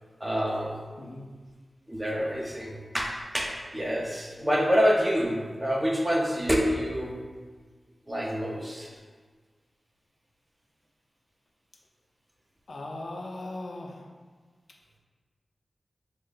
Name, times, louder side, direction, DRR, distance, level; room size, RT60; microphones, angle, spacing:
voice 1, 0.2-0.8 1.9-7.1 8.1-8.9, equal, 15° right, -1 dB, 0.5 m, -27 dB
voice 2, 1.0-1.3 12.7-14.1, left 2 dB, 70° left, 0 dB, 0.4 m, -38 dB
3.4 x 2.1 x 3.8 m, 1.5 s
wide cardioid pair, 85°, 0 cm